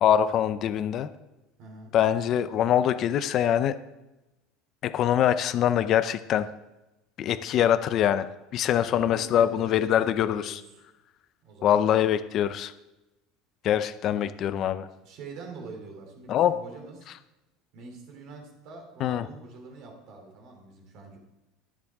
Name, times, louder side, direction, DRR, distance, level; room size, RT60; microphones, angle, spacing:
voice 1, 0.0-1.1 1.9-3.8 4.8-6.5 7.2-10.6 11.6-12.7 13.6-14.9 16.3-16.5 19.0-19.3, left 10 dB, 40° left, 12 dB, 0.6 m, -24 dB
voice 2, 1.6-1.9 8.7-10.6 11.4-11.8 15.0-17.1 17.7-21.2, right 3 dB, 55° right, 2 dB, 3.0 m, -45 dB
22.5 x 7.5 x 3.6 m, 1.0 s
cardioid pair, 155°, 0 cm